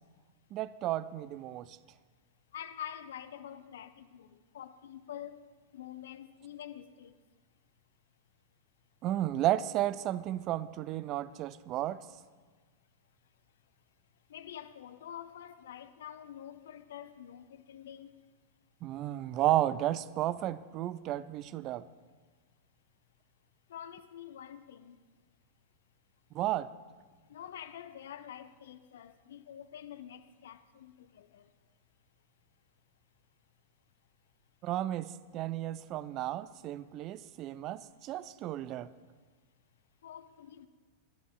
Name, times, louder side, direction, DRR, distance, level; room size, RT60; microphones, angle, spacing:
voice 1, 0.5-1.8 9.0-12.0 18.8-21.9 26.3-26.7 34.6-38.9, right 14 dB, 35° right, 0.3 m, -33 dB
voice 2, 2.5-5.4 5.7-7.1 14.3-18.1 23.7-25.0 27.3-31.4 40.0-40.7, left 10 dB, 60° left, 0.5 m, -47 dB
27.5 x 11.0 x 2.3 m
figure-of-eight pair, 90°, 0 cm